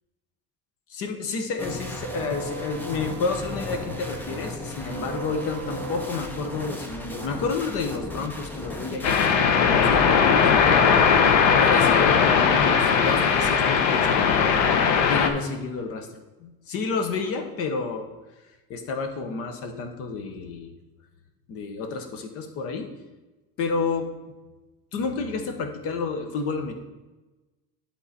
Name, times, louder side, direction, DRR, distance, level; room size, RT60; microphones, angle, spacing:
voice 1, 0.9-11.2 11.6-14.6 15.1-16.1 16.4-18.1 18.7-20.7 21.5-22.9 23.6-24.0 24.9-26.7, left 4 dB, 45° left, 5 dB, 1.0 m, -30 dB
sound 1, 1.6-9.4, equal, 5° left, 0.5 m, -35 dB
sound 2, 9.0-15.3, left 6 dB, 85° left, 0.9 m, -19 dB
11.0 x 3.9 x 4.1 m, 1.1 s
cardioid pair, 170°, 32 cm